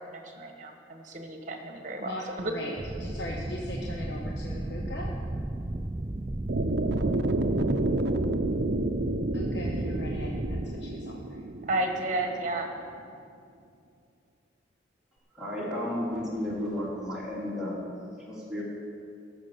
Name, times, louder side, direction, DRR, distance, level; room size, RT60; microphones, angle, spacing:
voice 1, 0.0-2.5 11.6-12.7, right 2 dB, 45° right, 3 dB, 1.4 m, -32 dB
voice 2, 2.0-5.1 9.3-11.5, left 1 dB, 65° left, -1 dB, 1.0 m, -39 dB
sound 1, 2.8-10.7, right 1 dB, 20° right, 0.4 m, -34 dB
sound 2, 6.5-12.6, right 2 dB, 65° right, 0.6 m, -30 dB
voice 3, 15.3-17.9 18.3-18.6, left 1 dB, 5° right, -7 dB, 2.8 m, -33 dB
14.5 x 6.2 x 6.9 m, 2.4 s
head